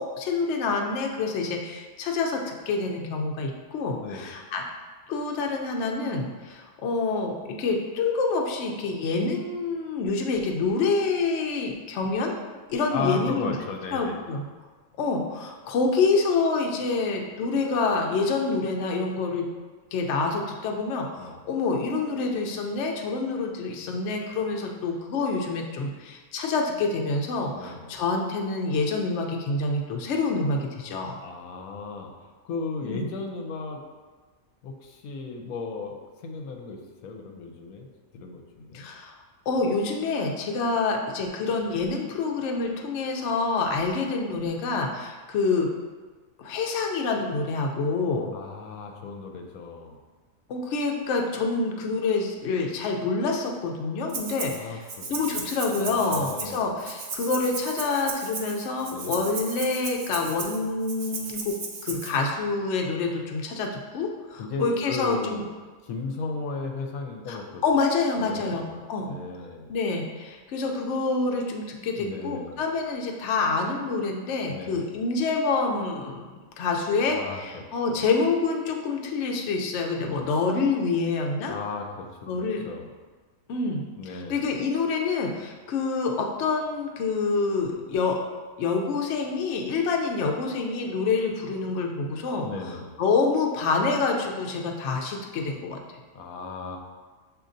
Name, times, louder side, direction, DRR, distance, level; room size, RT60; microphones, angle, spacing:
voice 1, 0.0-4.6 5.1-13.6 13.9-14.4 15.0-19.4 19.9-31.2 32.8-33.1 38.7-39.2 39.5-45.7 46.4-48.3 50.5-61.5 61.8-65.4 67.3-69.1 69.7-76.2 76.6-81.6 82.3-82.6 83.5-88.2 88.6-92.5 93.0-95.8, left 4 dB, 65° left, 1 dB, 0.8 m, -27 dB
voice 2, 12.9-14.2 21.2-21.4 27.5-28.0 31.2-32.1 32.4-33.8 34.6-35.9 36.2-37.9 38.1-38.9 48.3-49.9 54.5-55.4 55.8-56.7 58.9-59.3 64.4-65.4 65.8-67.6 68.2-69.7 71.8-72.6 74.5-74.9 77.1-78.1 80.0-80.3 81.5-82.9 84.0-84.4 92.1-93.0 96.1-96.8, left 4 dB, 80° left, 2 dB, 1.0 m, -36 dB
Rattle (instrument), 54.1-54.6 54.9-62.1, right 4 dB, 60° right, 0.5 m, -35 dB
7.2 x 2.8 x 2.6 m, 1.4 s
omnidirectional pair, 1.5 m